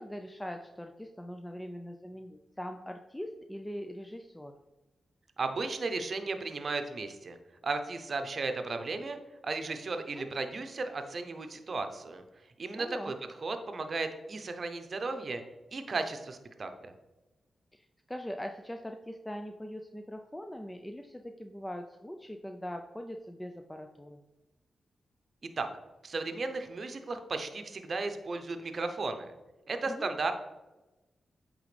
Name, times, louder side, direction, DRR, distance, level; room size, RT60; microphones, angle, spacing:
voice 1, 0.0-4.5 10.1-10.2 12.8-13.1 17.7-24.2 29.9-30.1, equal, 10° left, 5 dB, 0.4 m, -42 dB
voice 2, 5.4-7.4 7.6-9.2 9.4-12.2 12.6-13.2 13.4-15.4 15.7-16.9 25.6-25.7 26.0-29.3 29.7-30.3, right 3 dB, 55° right, 7 dB, 0.7 m, -35 dB
8.3 x 3.6 x 3.3 m, 1.1 s
cardioid pair, 55°, 0 cm